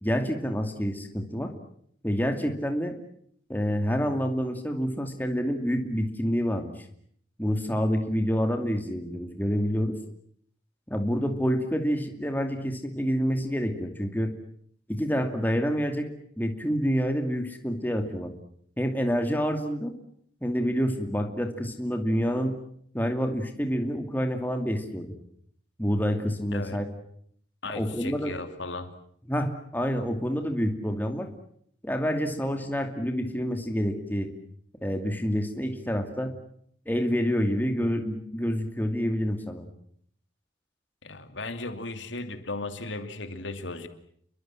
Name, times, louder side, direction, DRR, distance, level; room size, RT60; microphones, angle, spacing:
voice 1, 0.0-1.5 2.0-3.0 3.5-6.7 7.4-9.9 10.9-14.3 14.9-16.1 16.4-18.3 18.8-19.9 20.4-22.5 22.9-25.2 25.8-26.9 27.7-28.4 29.3-31.3 31.8-34.3 34.8-36.3 36.9-39.7, equal, 10° left, 5 dB, 2.5 m, -27 dB
voice 2, 27.6-28.9 41.0-43.9, left 2 dB, 80° left, 8 dB, 2.7 m, -36 dB
30.0 x 23.5 x 7.6 m, 0.66 s
head